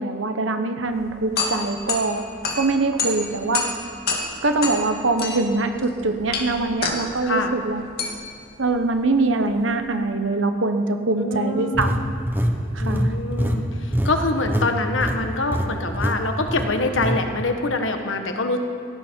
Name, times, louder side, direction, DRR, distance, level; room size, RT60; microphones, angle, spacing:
voice 1, 0.0-2.2 2.5-3.7 4.4-7.8 8.6-11.9 12.7-13.1, right 3 dB, 80° right, 7 dB, 1.2 m, -23 dB
sound 1, 0.9-10.0, left 4 dB, 55° left, 2.1 m, -30 dB
voice 2, 7.2-7.5 11.1-12.1 12.8-18.6, left 2 dB, 80° left, 5 dB, 1.5 m, -25 dB
sound 2, 11.7-14.7 14.9-15.2 15.5-15.7 15.9-16.2 16.5-17.2, equal, 10° right, 1.1 m, -23 dB
18.5 x 16.0 x 4.7 m, 2.4 s
head